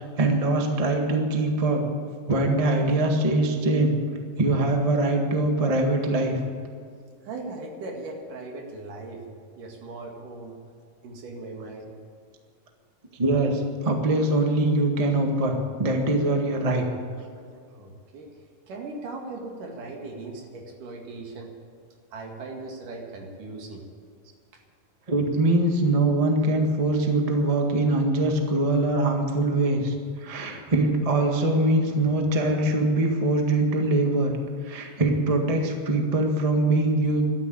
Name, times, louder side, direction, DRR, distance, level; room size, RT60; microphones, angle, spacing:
voice 1, 0.0-1.8 2.3-3.9 4.4-6.4 13.1-16.9 25.1-34.4 34.6-37.2, right 2 dB, 50° right, 2 dB, 0.4 m, -23 dB
voice 2, 7.2-9.2 9.6-10.6 11.0-11.9 17.7-18.3 18.7-21.5 22.1-23.8, right 3 dB, 65° right, 1 dB, 3.6 m, -38 dB
13.5 x 11.5 x 9.0 m, 2.3 s
omnidirectional pair, 4.0 m